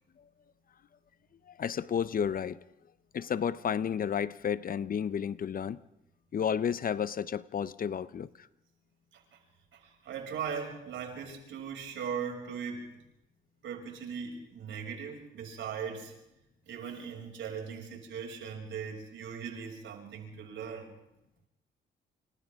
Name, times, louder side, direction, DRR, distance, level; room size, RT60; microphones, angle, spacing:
voice 1, 1.5-2.6 3.1-5.8 6.3-8.5, left 8 dB, 45° left, 0.8 m, -32 dB
voice 2, 9.7-13.0 13.6-16.1 16.6-20.9, right 7 dB, 75° right, 6.7 m, -39 dB
29.0 x 27.0 x 3.7 m
cardioid pair, 90°, 20 cm